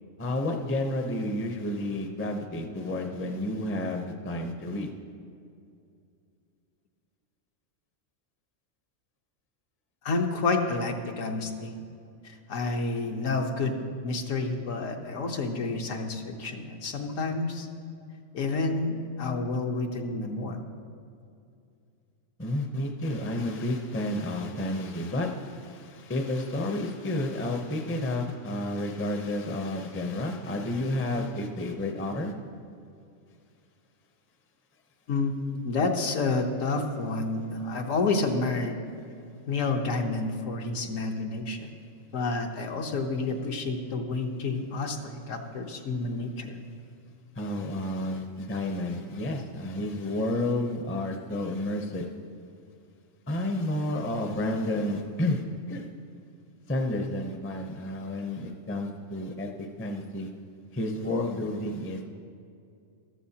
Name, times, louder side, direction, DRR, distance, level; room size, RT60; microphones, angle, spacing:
voice 1, 0.2-4.9 22.4-32.3 47.4-52.1 53.3-55.9 56.7-60.3 60.7-62.1, left 1 dB, 15° left, 4 dB, 0.4 m, -31 dB
voice 2, 10.0-11.7 12.2-13.8 14.0-17.7 18.3-20.6 35.1-38.8 39.5-41.7 42.1-46.6, left 3 dB, 75° left, 3 dB, 1.3 m, -29 dB
14.5 x 12.5 x 2.8 m, 2.4 s
omnidirectional pair, 1.4 m